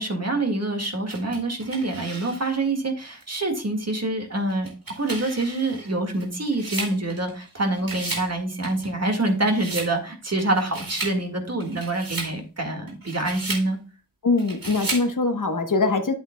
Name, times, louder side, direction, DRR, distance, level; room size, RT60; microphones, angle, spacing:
voice 1, 0.0-13.8, right 2 dB, 50° right, 3 dB, 1.9 m, -26 dB
sound 1, 1.1-2.6 3.2-3.3 4.5-7.5 7.8-8.3 8.6-9.9 10.4-11.2 11.6-12.3 12.9-13.7 14.4-15.1, right 2 dB, 80° right, 2.5 m, -34 dB
voice 2, 14.2-16.1, left 3 dB, 65° left, 6 dB, 1.2 m, -22 dB
9.5 x 7.7 x 2.2 m, 0.35 s
wide cardioid pair, 45°, 34 cm